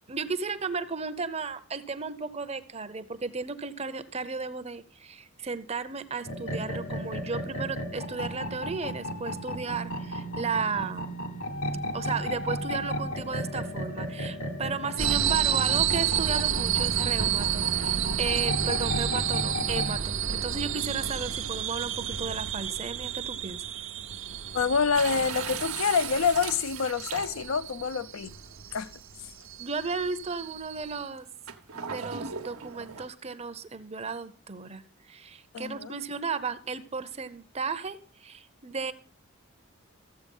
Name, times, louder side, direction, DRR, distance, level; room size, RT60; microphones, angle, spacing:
voice 1, 0.1-11.1 11.9-23.6 29.6-31.3 31.7-38.9, right 4 dB, 30° right, 0.7 m, -34 dB
sound 1, 6.2-20.0, equal, 90° left, 1.8 m, -34 dB
sound 2, 15.0-31.0, right 9 dB, 65° right, 0.8 m, -30 dB
voice 2, 24.5-28.3 28.7-28.9 35.5-36.0, left 6 dB, 70° left, 0.5 m, -27 dB
sound 3, 24.9-27.7 28.6-28.7 31.5-33.1, right 7 dB, 90° right, 1.1 m, -37 dB
14.0 x 7.9 x 5.4 m
head